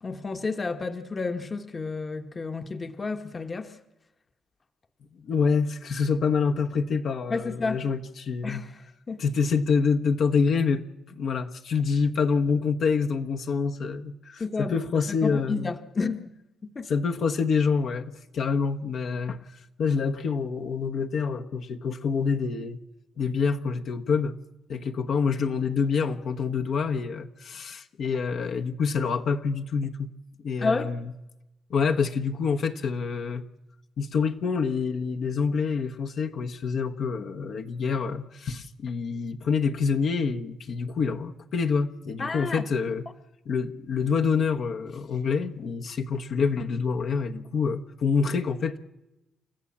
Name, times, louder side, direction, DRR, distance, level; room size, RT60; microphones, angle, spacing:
voice 1, 0.0-3.7 7.3-7.8 8.4-8.8 9.1-9.2 14.4-14.8 15.2-16.3 16.7-16.9 30.6-30.9 42.2-42.6, left 4 dB, 30° left, 1.1 m, -30 dB
voice 2, 5.2-8.6 9.2-10.8 11.1-15.7 16.9-19.4 19.8-22.8 23.2-24.4 24.7-30.1 30.4-31.1 31.7-33.4 34.0-43.0 43.5-48.8, left 5 dB, 60° left, 1.2 m, -26 dB
29.0 x 14.0 x 7.3 m
cardioid pair, 90°, 0 cm